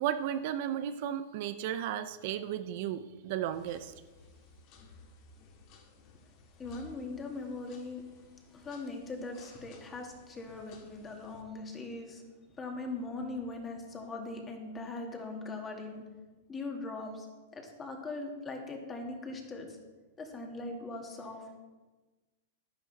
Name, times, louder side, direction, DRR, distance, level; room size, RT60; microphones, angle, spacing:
voice 1, 0.0-3.9, right 10 dB, 55° right, 11 dB, 0.6 m, -34 dB
sound 1, 3.5-11.4, left 3 dB, 45° left, 2.1 m, -57 dB
voice 2, 6.6-8.0 8.5-12.2 12.6-16.1 16.5-17.3 17.5-19.8 20.2-21.6, left 3 dB, 20° left, 2 dB, 2.2 m, -40 dB
11.0 x 10.5 x 4.1 m, 1.2 s
hypercardioid pair, 135°, 0 cm